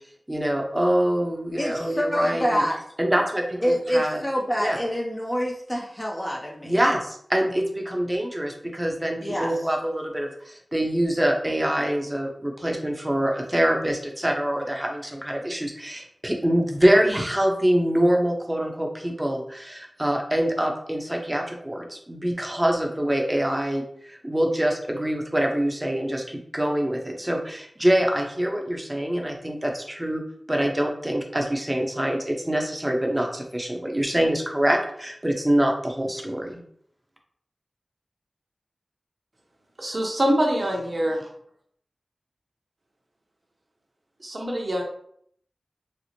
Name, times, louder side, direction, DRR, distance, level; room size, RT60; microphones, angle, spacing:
voice 1, 0.3-2.6 3.0-4.2 4.6-4.8 6.6-30.2 30.5-36.6, right 1 dB, 20° right, 1 dB, 0.7 m, -25 dB
voice 2, 1.6-2.8 3.6-6.7 9.2-9.5, equal, 20° left, -1 dB, 0.5 m, -26 dB
voice 3, 39.8-41.3 44.2-44.8, equal, 50° right, 0 dB, 0.8 m, -24 dB
4.2 x 2.0 x 2.8 m, 0.66 s
wide cardioid pair, 65°, 0 cm